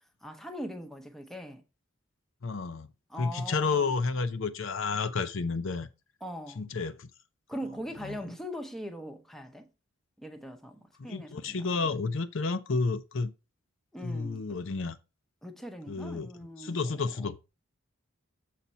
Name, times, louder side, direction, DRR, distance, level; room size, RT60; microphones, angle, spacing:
voice 1, 0.2-1.6 3.1-3.9 6.2-6.6 7.5-9.7 10.2-11.8 13.9-14.6 15.4-16.8 17.2-17.3, equal, ahead, 0.7 m, -41 dB
voice 2, 2.4-2.9 3.2-5.9 6.6-7.1 8.0-8.3 11.0-13.3 14.0-15.0 15.9-16.3 16.6-17.4, left 4 dB, 65° left, 0.6 m, -31 dB
7.2 x 4.2 x 5.4 m
head